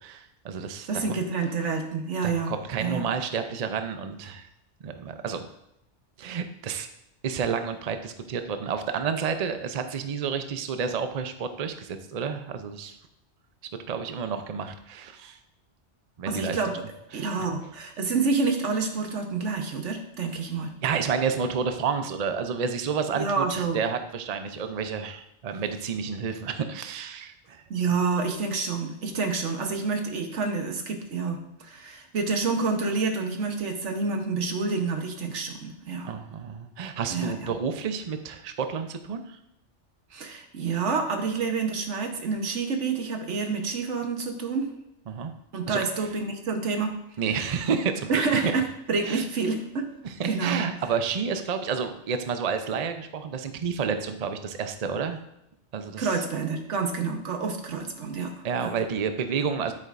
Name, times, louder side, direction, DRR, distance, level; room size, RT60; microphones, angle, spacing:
voice 1, 0.0-0.9 2.2-4.5 4.8-5.5 6.2-6.9 7.2-13.0 13.9-15.4 16.2-16.6 17.1-17.3 20.8-27.6 36.0-39.4 45.1-45.3 45.7-45.8 47.2-48.1 48.4-48.5 49.0-49.2 50.2-55.2 55.7-56.1 58.4-59.7, right 6 dB, 45° right, 8 dB, 0.6 m, -30 dB
voice 2, 0.9-3.1 16.2-16.8 17.1-20.7 23.1-23.8 27.7-36.1 37.1-37.6 40.1-44.7 45.5-46.9 48.1-49.8 50.2-50.6 56.0-58.3 58.6-58.7, right 4 dB, 85° right, 5 dB, 1.4 m, -28 dB
9.9 x 8.5 x 2.5 m, 0.81 s
omnidirectional pair, 1.2 m